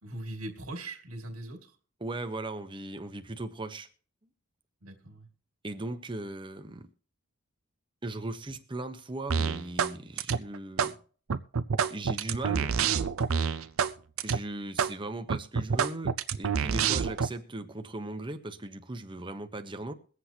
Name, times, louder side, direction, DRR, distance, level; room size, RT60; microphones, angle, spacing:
voice 1, 0.0-1.8 4.8-5.3, right 1 dB, 85° right, 2.2 m, -40 dB
voice 2, 2.0-3.9 5.6-6.9 8.0-11.0 11.9-12.8 14.2-19.9, right 2 dB, 25° right, 1.0 m, -38 dB
sound 1, 9.3-9.9 10.2-10.9 11.3-13.9 14.2-14.4 14.8-14.9 15.3-17.3, right 6 dB, 65° right, 0.6 m, -27 dB
22.5 x 8.0 x 2.9 m
head